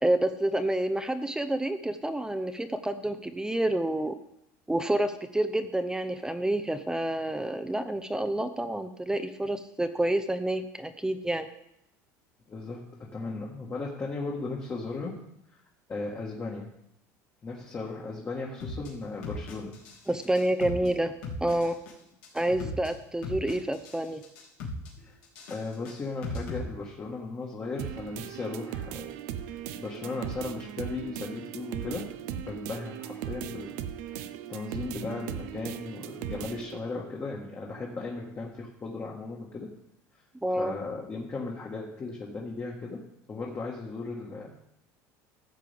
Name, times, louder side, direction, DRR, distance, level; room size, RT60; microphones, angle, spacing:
voice 1, 0.0-4.1 4.7-11.5 20.1-21.1 21.4-21.7 22.3-24.2 40.4-40.7, right 1 dB, 10° right, 9 dB, 0.7 m, -28 dB
voice 2, 12.5-15.3 15.5-15.6 15.9-16.7 17.4-19.8 25.0-25.2 25.5-29.1 29.4-34.2 34.5-39.7 40.6-43.0 43.3-44.5, left 3 dB, 30° left, -2 dB, 1.7 m, -36 dB
sound 1, 18.6-18.9 19.2-20.0 20.2-20.9 21.2-21.9 22.2-22.9 23.2-24.0 24.2-24.9 25.2-26.6, left 2 dB, 75° left, 2.6 m, -37 dB
sound 2, 27.8-36.8, right 10 dB, 80° right, 0.7 m, -38 dB
13.5 x 7.6 x 3.5 m, 0.81 s
supercardioid pair, 95°, 9 cm